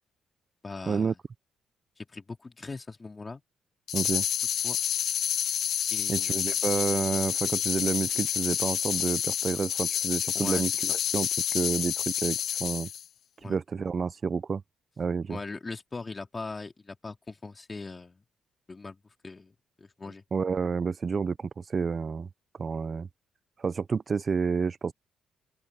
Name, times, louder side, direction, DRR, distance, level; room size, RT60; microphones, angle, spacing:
voice 1, 0.6-1.2 2.0-3.4 4.6-4.8 5.9-6.6 10.3-11.0 13.4-13.6 15.3-18.2 18.7-19.0 19.2-20.2, left 3 dB, 25° left, 3.3 m, -40 dB
sound 1, 3.9-13.0, left 9 dB, 70° left, 0.8 m, -29 dB
voice 2, 3.9-4.2 6.1-12.9 13.4-14.6 15.0-15.4 20.3-22.3 22.6-23.1 23.6-24.9, right 5 dB, 40° right, 0.4 m, -29 dB
open air
cardioid pair, 90°, 0 cm